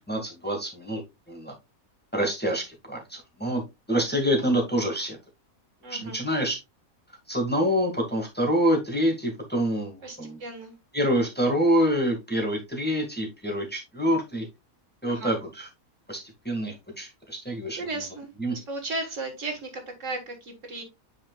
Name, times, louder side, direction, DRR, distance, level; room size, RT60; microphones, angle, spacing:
voice 1, 0.1-1.0 1.3-1.5 2.1-3.6 3.9-5.2 5.9-6.6 7.3-10.4 10.9-14.5 15.0-15.7 16.1-16.2 16.5-17.9 18.4-18.6, equal, 5° left, 1 dB, 1.9 m, -26 dB
voice 2, 5.8-6.2 10.0-10.7 15.1-15.4 17.8-20.8, right 2 dB, 60° right, 5 dB, 1.9 m, -35 dB
9.2 x 5.0 x 2.3 m, 0.23 s
omnidirectional pair, 1.5 m